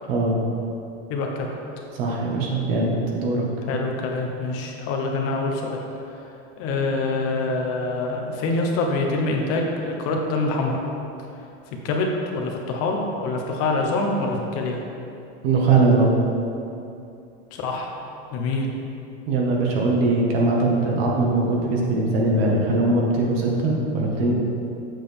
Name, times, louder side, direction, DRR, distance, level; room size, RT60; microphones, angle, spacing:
voice 1, 1.1-1.5 3.7-5.8 6.1-6.2 6.6-10.8 11.8-14.8 17.5-17.9 18.3-18.7, left 3 dB, 45° left, 1 dB, 1.1 m, -25 dB
voice 2, 1.9-3.5 15.4-16.1 19.3-24.3, right 2 dB, 60° right, -2 dB, 1.8 m, -21 dB
7.5 x 6.6 x 3.6 m, 2.7 s
supercardioid pair, 130°, 33 cm